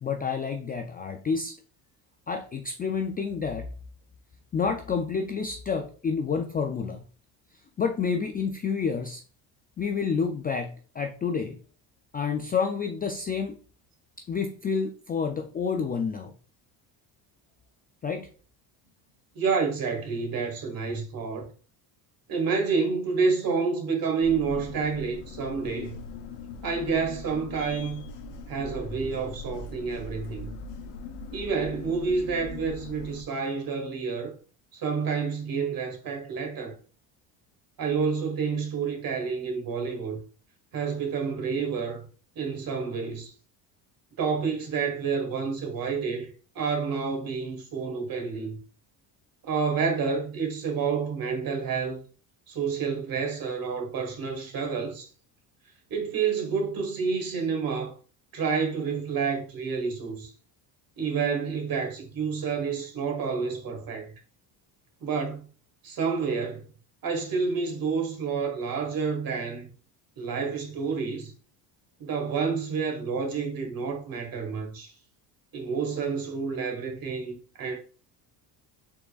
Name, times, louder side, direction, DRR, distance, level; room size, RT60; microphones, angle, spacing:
voice 1, 0.0-1.5 2.3-3.7 4.5-7.0 7.8-9.2 9.8-11.6 12.1-13.6 14.3-16.3 18.0-18.3, left 5 dB, 20° left, 0.3 m, -29 dB
voice 2, 19.3-21.5 22.3-26.0 26.6-28.0 28.5-30.5 31.3-34.3 34.7-36.7 37.8-40.2 40.7-42.1 42.3-43.3 44.2-48.6 49.4-52.0 52.5-55.1 55.9-57.9 58.3-60.3 61.0-64.1 65.0-65.5 65.8-66.6 67.0-69.7 70.2-71.3 72.0-74.9 75.5-77.8, right 5 dB, 50° right, 1.5 m, -29 dB
sound 1, 24.2-33.2, left 3 dB, 65° left, 0.9 m, -41 dB
4.6 x 4.0 x 2.3 m
supercardioid pair, 95°, 46 cm